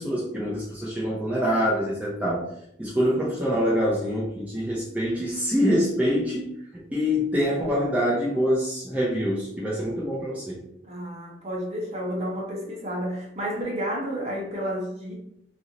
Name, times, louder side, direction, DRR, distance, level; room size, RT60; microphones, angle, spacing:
voice 1, 0.0-2.5 2.8-6.5 6.9-10.6, equal, 10° right, -6 dB, 0.5 m, -25 dB
voice 2, 10.8-15.2, equal, 35° right, -3 dB, 0.9 m, -31 dB
2.5 x 2.1 x 3.9 m, 0.76 s
head